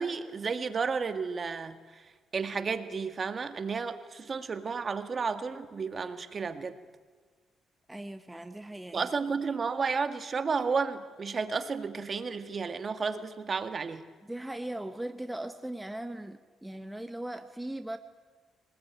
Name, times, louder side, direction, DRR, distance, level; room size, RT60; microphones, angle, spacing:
voice 1, 0.0-1.8 2.3-6.7 8.9-14.0, right 5 dB, 40° right, 8 dB, 1.8 m, -32 dB
voice 2, 7.9-9.1 14.2-18.0, right 1 dB, 10° right, 7 dB, 1.2 m, -39 dB
23.5 x 20.0 x 9.3 m, 1.4 s
cardioid pair, 90°, 0 cm